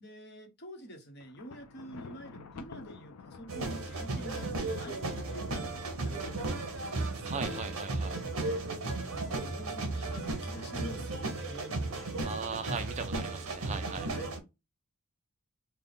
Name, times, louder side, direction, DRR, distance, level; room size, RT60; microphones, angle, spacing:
voice 1, 0.0-6.5 8.9-11.1 11.4-12.3 14.1-14.3, equal, 45° left, 0.9 m, -47 dB
Thunder, 1.2-8.4, left 4 dB, 80° left, 0.5 m, -50 dB
sound 1, 3.5-14.4, right 2 dB, 70° right, 0.9 m, -35 dB
voice 2, 7.2-8.2 12.2-14.1, right 5 dB, 30° right, 0.4 m, -38 dB
3.4 x 2.2 x 3.9 m
head